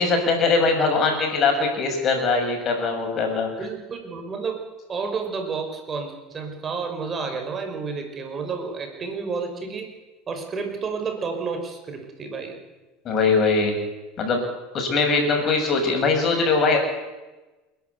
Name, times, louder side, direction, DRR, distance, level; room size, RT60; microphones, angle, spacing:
voice 1, 0.0-3.5 13.1-13.8 14.2-14.4 14.7-16.8, left 4 dB, 40° left, 4 dB, 6.8 m, -21 dB
voice 2, 3.6-4.6 4.9-9.9 10.3-12.6, right 5 dB, 30° right, 4 dB, 5.6 m, -30 dB
28.5 x 11.5 x 8.2 m, 1.1 s
supercardioid pair, 100°, 0 cm